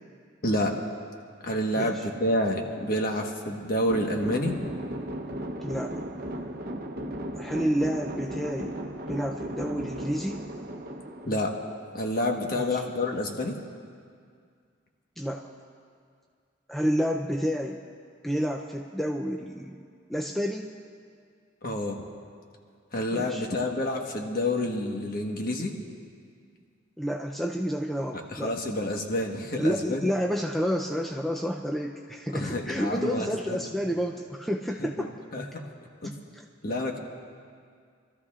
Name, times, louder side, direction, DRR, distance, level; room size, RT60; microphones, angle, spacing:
voice 1, 0.4-0.7 1.4-4.7 11.3-11.5 11.9-13.5 21.6-22.0 22.9-25.7 28.3-30.1 32.3-33.6 34.8-35.1 35.3-35.4 36.0-36.1 36.6-37.0, left 1 dB, 50° left, 2 dB, 1.3 m, -28 dB
voice 2, 1.8-2.1 5.6-6.0 7.3-8.8 9.1-10.5 12.6-12.8 15.2-15.5 16.7-17.8 18.2-19.8 20.1-20.7 23.1-23.5 27.0-28.5 29.6-35.1 36.3-36.4, equal, ahead, 0 dB, 0.4 m, -30 dB
sound 1, 3.9-12.2, right 1 dB, 50° right, 0.8 m, -36 dB
28.0 x 13.5 x 2.4 m, 2.2 s
head